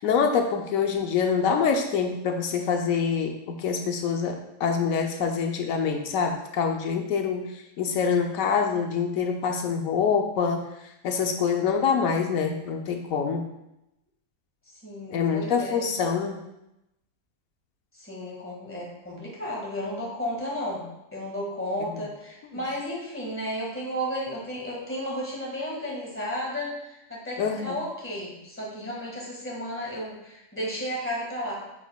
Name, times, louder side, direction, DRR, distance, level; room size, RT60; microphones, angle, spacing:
voice 1, 0.0-7.5 7.8-10.7 11.0-13.4 15.1-16.4 27.4-27.8, left 6 dB, 85° left, 4 dB, 1.0 m, -25 dB
voice 2, 14.8-15.8 17.9-31.6, equal, 10° left, -4 dB, 1.6 m, -33 dB
8.9 x 4.9 x 2.2 m, 0.87 s
omnidirectional pair, 1.4 m